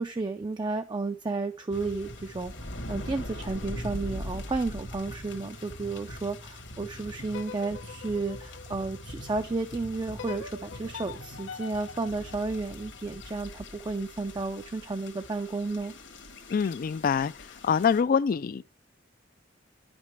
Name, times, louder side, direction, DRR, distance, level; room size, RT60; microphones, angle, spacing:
voice 1, 0.0-2.5 2.9-15.9, right 3 dB, 20° right, 0.4 m, -32 dB
sound 1, 1.7-18.0, left 1 dB, 65° left, 1.5 m, -42 dB
sound 2, 7.3-9.5 10.2-13.3, left 6 dB, 85° left, 0.7 m, -44 dB
voice 2, 16.5-18.6, left 6 dB, 45° left, 0.3 m, -25 dB
9.8 x 5.2 x 3.2 m
head